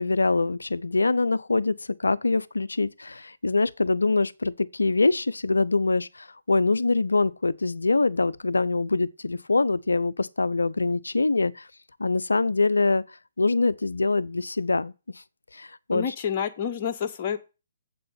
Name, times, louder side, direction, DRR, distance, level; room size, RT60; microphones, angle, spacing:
voice 1, 0.0-11.7 12.0-13.0 13.4-14.9 15.5-16.0, left 3 dB, 75° left, 0.6 m, -24 dB
voice 2, 15.9-17.4, left 8 dB, 35° left, 1.5 m, -28 dB
7.6 x 7.6 x 5.8 m
figure-of-eight pair, 130°, 0 cm